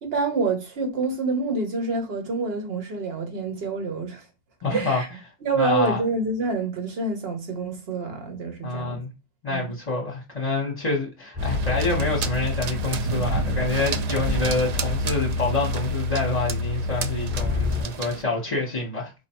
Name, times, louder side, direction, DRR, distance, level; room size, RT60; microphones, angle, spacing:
voice 1, 0.0-4.2 4.7-5.1 5.4-9.0 9.5-9.7, right 3 dB, 55° right, 1.4 m, -27 dB
voice 2, 4.6-5.0 5.5-6.0 8.6-9.1 9.4-19.1, left 3 dB, 35° left, 1.0 m, -27 dB
sound 1, 11.3-17.8, left 3 dB, 10° right, 0.9 m, -28 dB
sound 2, 11.4-18.2, right 5 dB, 75° right, 0.3 m, -32 dB
5.1 x 2.2 x 4.3 m
omnidirectional pair, 1.2 m